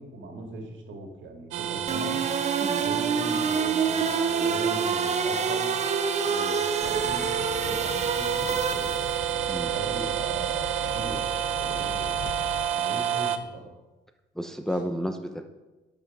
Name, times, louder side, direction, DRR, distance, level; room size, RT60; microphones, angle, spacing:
voice 1, 0.0-2.2 2.7-5.8 6.2-9.0 9.6-11.3 11.6-12.3 12.7-13.7, right 2 dB, 70° right, 2 dB, 2.1 m, -39 dB
sound 1, 1.5-13.4, right 10 dB, 85° right, 0.6 m, -30 dB
sound 2, 1.9-9.3, right 5 dB, 35° right, 0.7 m, -28 dB
sound 3, 6.8-12.7, left 7 dB, 65° left, 0.7 m, -41 dB
voice 2, 14.4-15.4, equal, ahead, 6 dB, 0.6 m, -31 dB
10.5 x 5.2 x 5.3 m, 1.1 s
cardioid pair, 90°, 20 cm